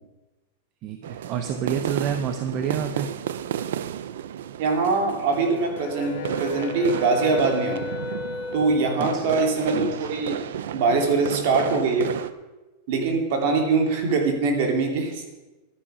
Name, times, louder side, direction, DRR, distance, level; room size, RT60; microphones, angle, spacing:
voice 1, 0.8-3.1 9.0-9.3, right 7 dB, 35° right, 7 dB, 0.8 m, -28 dB
sound 1, 1.0-12.3, right 10 dB, 80° right, 0.6 m, -32 dB
Brass instrument, 4.6-9.4, left 7 dB, 65° left, 1.7 m, -44 dB
voice 2, 4.6-7.9 8.5-10.4 10.7-12.3 12.9-15.3, right 4 dB, 55° right, 3 dB, 2.8 m, -23 dB
Wind instrument woodwind instrument, 5.4-9.5, left 5 dB, 15° left, 1.7 m, -35 dB
11.5 x 9.9 x 5.6 m, 1.1 s
supercardioid pair, 155°, 0 cm